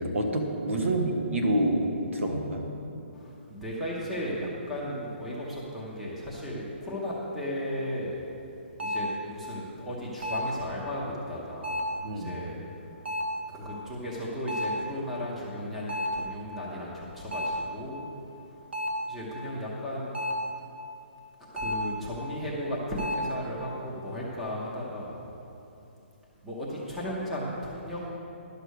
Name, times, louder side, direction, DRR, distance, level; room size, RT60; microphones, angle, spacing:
voice 1, 0.0-1.9 2.1-2.6 12.0-12.3, right 1 dB, 85° right, 2 dB, 1.7 m, -27 dB
voice 2, 3.1-8.2 8.8-11.8 12.1-12.6 13.5-18.1 18.5-18.6 19.1-20.1 21.5-25.2 26.4-28.1, equal, ahead, -6 dB, 0.8 m, -35 dB
sound 1, 7.7-7.8 8.8-9.2 10.2-10.6 11.6-12.0 13.0-13.4 14.5-14.9 15.9-16.3 17.3-17.7 18.7-19.1 20.1-20.5 21.6-22.0 23.0-23.3, equal, 60° right, 1.7 m, -31 dB
11.5 x 6.7 x 6.4 m, 2.9 s
hypercardioid pair, 180°, 7 cm